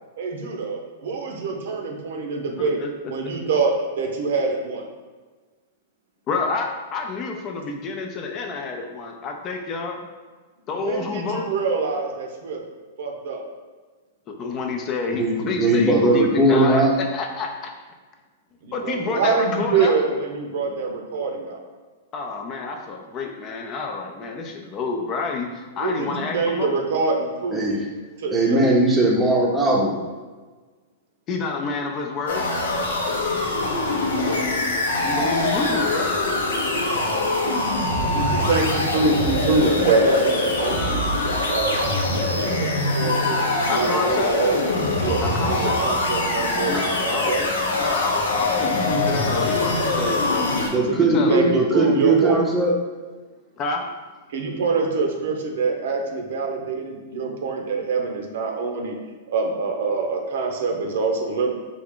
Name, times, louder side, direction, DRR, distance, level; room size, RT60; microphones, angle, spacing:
voice 1, 0.2-2.8 3.1-4.9 10.8-12.6 13.0-13.4 18.6-21.6 25.8-27.8 28.2-28.6 38.0-41.0 41.5-42.7 42.9-44.7 45.0-46.7 47.0-47.4 50.9-52.4 54.3-58.9 59.3-61.5, right 4 dB, 70° right, 2 dB, 0.7 m, -25 dB
voice 2, 2.6-2.9 3.2-3.3 6.3-10.0 10.7-11.5 14.3-17.7 18.7-20.1 22.1-26.7 31.3-32.5 35.0-36.2 43.7-44.4 45.2-45.8 46.7-47.5 47.8-50.5 50.9-51.4 53.6-53.9, left 4 dB, 30° left, 3 dB, 0.4 m, -28 dB
voice 3, 15.1-16.9 27.5-27.8 28.3-30.0 50.7-52.7, right 2 dB, 10° right, -2 dB, 0.7 m, -19 dB
sound 1, 32.3-50.7, left 2 dB, 85° left, 0.7 m, -23 dB
3.5 x 2.4 x 3.6 m, 1.3 s
hypercardioid pair, 135°, 0 cm